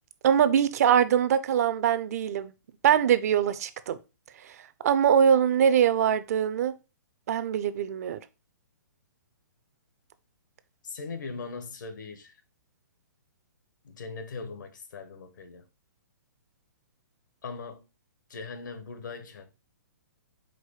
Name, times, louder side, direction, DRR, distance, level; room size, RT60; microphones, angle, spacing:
voice 1, 0.2-2.5 2.8-4.0 4.8-6.7 7.3-8.2, right 8 dB, 55° right, 0.5 m, -22 dB
voice 2, 10.8-12.3 13.8-15.7 17.4-17.9 18.3-19.5, left 4 dB, 75° left, 1.1 m, -40 dB
4.8 x 2.2 x 4.6 m
hypercardioid pair, 150°, 10 cm